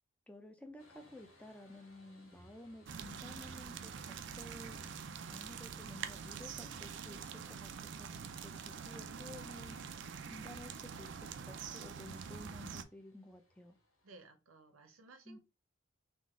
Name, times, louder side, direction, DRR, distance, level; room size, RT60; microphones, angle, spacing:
voice 1, 0.3-4.8 5.3-7.7 8.0-9.8 10.3-11.2 11.5-13.8 15.3-15.4, left 1 dB, 5° left, 0.5 m, -53 dB
sound 1, 0.8-14.2, left 1 dB, 90° left, 1.7 m, -66 dB
sound 2, 2.9-12.8, right 6 dB, 55° right, 0.4 m, -45 dB
voice 2, 14.0-15.4, right 3 dB, 80° right, 0.8 m, -58 dB
3.8 x 2.5 x 3.6 m
head